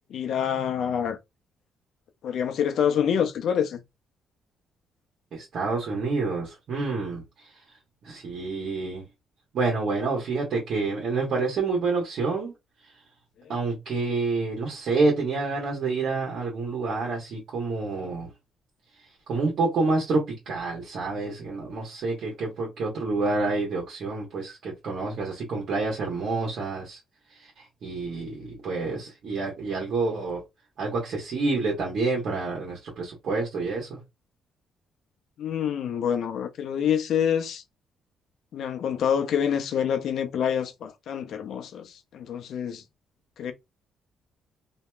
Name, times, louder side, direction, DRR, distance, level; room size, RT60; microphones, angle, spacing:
voice 1, 0.1-1.2 2.2-3.8 35.4-37.6 38.5-42.8 43.4-43.5, left 8 dB, 70° left, 0.6 m, -26 dB
voice 2, 5.3-7.5 8.0-9.0 9.5-12.5 13.5-18.3 19.3-27.0 27.3-30.4 30.8-34.0, right 3 dB, 65° right, 1.2 m, -28 dB
2.9 x 2.7 x 2.3 m
cardioid pair, 90°, 0 cm